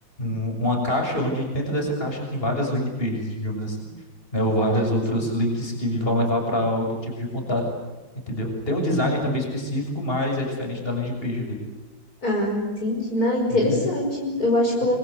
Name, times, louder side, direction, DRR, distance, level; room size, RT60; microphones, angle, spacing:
voice 1, 0.2-3.9 4.3-7.6 8.3-11.6 13.5-13.9, left 1 dB, 30° left, 2 dB, 7.0 m, -25 dB
voice 2, 12.2-14.9, left 1 dB, 50° left, -1 dB, 6.2 m, -23 dB
25.5 x 25.5 x 8.4 m, 1.2 s
omnidirectional pair, 2.0 m